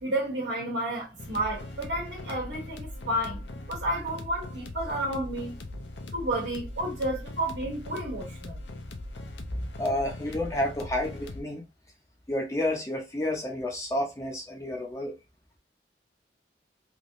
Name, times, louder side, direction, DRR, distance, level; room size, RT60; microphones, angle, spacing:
voice 1, 0.0-5.5 6.1-8.5, right 1 dB, 80° right, 1.2 m, -31 dB
sound 1, 1.2-11.4, left 2 dB, 85° left, 0.6 m, -40 dB
voice 2, 9.6-11.6 12.3-15.2, left 1 dB, 20° left, 0.6 m, -30 dB
3.4 x 2.9 x 2.5 m
head